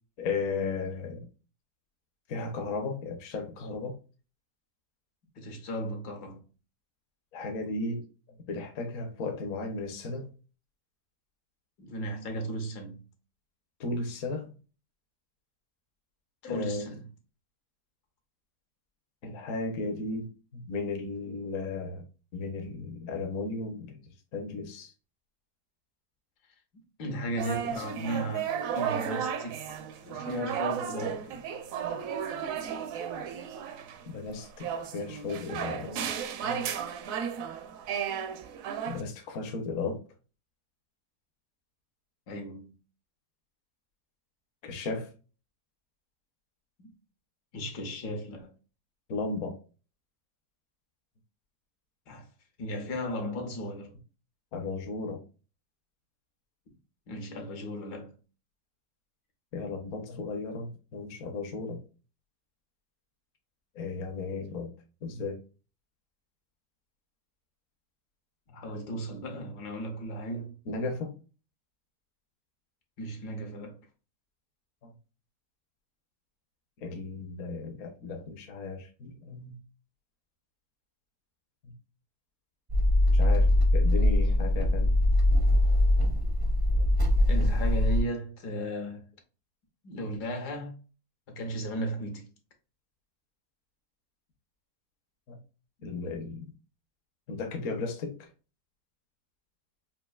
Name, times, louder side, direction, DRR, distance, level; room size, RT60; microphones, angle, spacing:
voice 1, 0.2-1.3 2.3-4.0 7.3-8.0 8.5-10.3 13.8-14.5 16.4-16.9 19.2-22.0 22.3-24.0 24.3-24.9 34.1-36.1 36.4-36.7 38.9-40.0 44.6-45.1 49.1-49.6 54.5-55.2 59.5-61.8 63.7-64.7 65.0-65.4 70.7-71.2 74.8-74.9 76.8-79.6 81.6-81.7 83.1-84.9 95.3-95.4 95.8-96.5 97.3-98.3, left 3 dB, 60° left, 1.0 m, -35 dB
voice 2, 5.4-6.4 11.8-13.0 16.4-17.0 26.7-31.4 42.3-42.7 46.8-46.9 47.5-48.5 52.1-52.3 52.6-53.9 57.1-58.1 68.5-70.5 73.0-73.8 87.2-89.1 89.8-90.8 91.3-92.3, right 1 dB, 75° left, 1.5 m, -35 dB
sound 1, 27.4-39.0, right 8 dB, 70° right, 0.8 m, -34 dB
sound 2, 82.7-88.0, left 1 dB, 35° right, 0.3 m, -22 dB
5.3 x 2.6 x 2.2 m
omnidirectional pair, 1.7 m